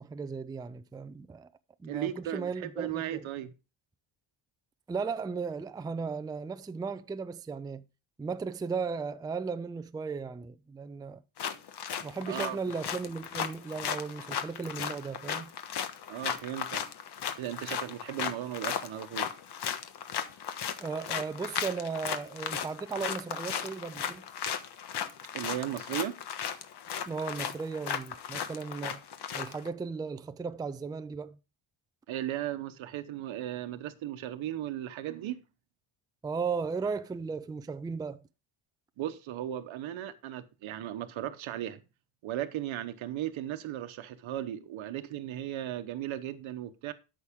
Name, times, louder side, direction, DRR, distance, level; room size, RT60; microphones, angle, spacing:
voice 1, 0.0-1.5 1.8-3.3 4.9-7.8 8.2-11.2 12.0-15.5 20.8-24.2 27.1-29.0 29.3-31.4 36.2-38.2, right 5 dB, 10° right, 0.4 m, -36 dB
voice 2, 1.9-3.5 12.3-12.6 16.1-16.8 17.4-19.3 25.3-26.2 32.1-35.4 39.0-41.8 42.2-46.9, right 12 dB, 65° right, 1.1 m, -36 dB
sound 1, 11.4-29.7, left 8 dB, 50° left, 1.3 m, -36 dB
13.0 x 6.4 x 3.6 m
cardioid pair, 155°, 50 cm